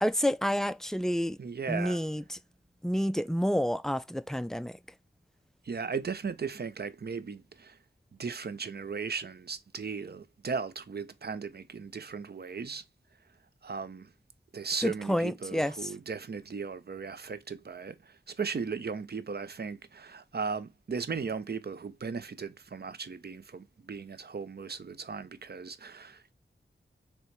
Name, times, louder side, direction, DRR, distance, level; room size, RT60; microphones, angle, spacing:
voice 1, 0.0-1.4 1.7-2.4 2.8-4.8 14.8-15.7, equal, ahead, 0.3 m, -29 dB
voice 2, 1.4-2.0 5.6-7.8 8.1-12.8 13.6-14.1 14.5-26.3, right 5 dB, 55° right, 0.6 m, -37 dB
4.4 x 3.1 x 3.2 m
cardioid pair, 50°, 20 cm